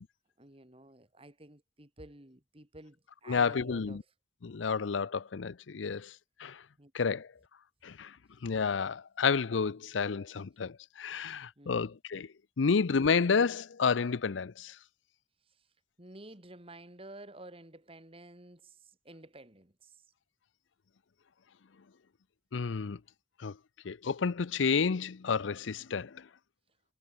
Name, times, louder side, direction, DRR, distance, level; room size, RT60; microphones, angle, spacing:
voice 1, 0.4-4.0 6.8-7.2 11.6-11.8 16.0-20.0, right 1 dB, 30° right, 2.9 m, -52 dB
voice 2, 3.3-4.0 4.4-6.1 6.4-6.6 6.9-7.3 7.8-8.1 8.4-12.3 12.6-14.7 22.5-23.0 23.4-23.5 23.8-26.2, left 5 dB, 90° left, 0.6 m, -30 dB
head